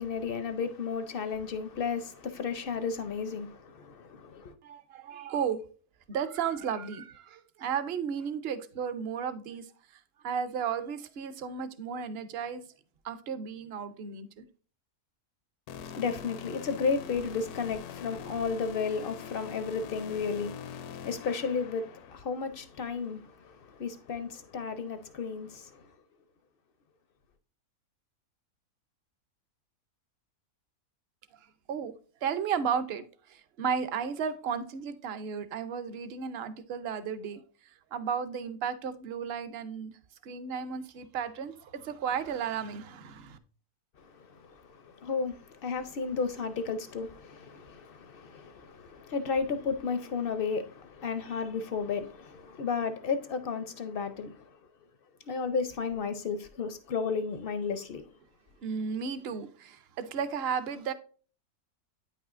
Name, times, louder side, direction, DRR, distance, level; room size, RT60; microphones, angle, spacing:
voice 1, 0.0-4.5 15.7-25.9 44.0-54.5 55.3-58.1, left 5 dB, 60° left, 0.5 m, -33 dB
voice 2, 4.6-5.6 6.1-12.6 13.0-14.5 31.7-31.9 32.2-37.4 37.9-39.9 40.2-43.4 58.6-60.9, right 7 dB, 55° right, 0.7 m, -34 dB
sound 1, 15.7-22.2, left 8 dB, 80° left, 1.1 m, -44 dB
9.1 x 5.5 x 2.5 m
omnidirectional pair, 1.6 m